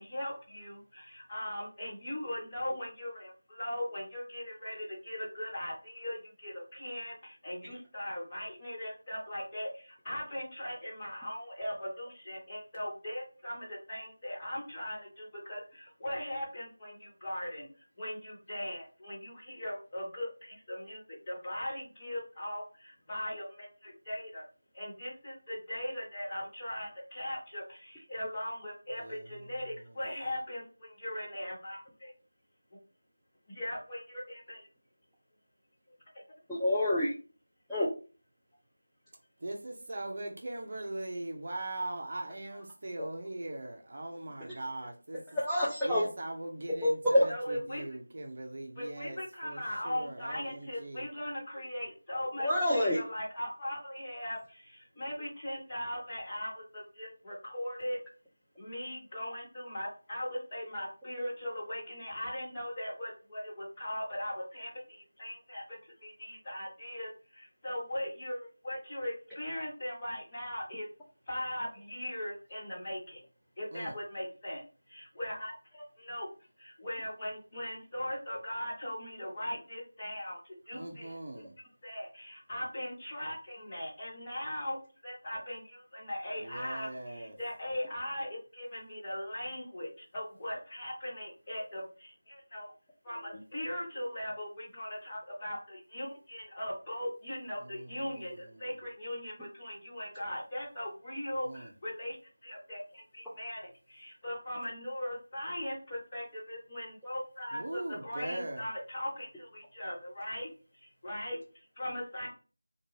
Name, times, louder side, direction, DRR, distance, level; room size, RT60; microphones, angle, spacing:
voice 1, 0.0-17.7 18.0-21.0 21.3-24.4 24.7-32.1 33.5-34.7 47.3-47.8 48.7-58.0 58.6-70.9 71.3-73.2 73.6-74.6 74.9-76.3 76.6-81.2 81.8-84.8 85.0-92.7 93.0-102.1 102.4-110.5 111.0-112.3, left 1 dB, 20° left, 1.2 m, -39 dB
voice 2, 29.0-29.6 39.4-45.2 45.8-51.1 73.7-73.9 80.7-81.6 86.4-87.4 97.6-98.7 101.4-101.7 107.5-108.6, right 1 dB, 45° right, 0.5 m, -41 dB
voice 3, 36.5-37.1 37.7-37.9 43.0-43.1 45.3-46.0 46.8-47.3 52.4-53.0, left 1 dB, ahead, 0.4 m, -27 dB
2.5 x 2.3 x 3.0 m
figure-of-eight pair, 170°, 0 cm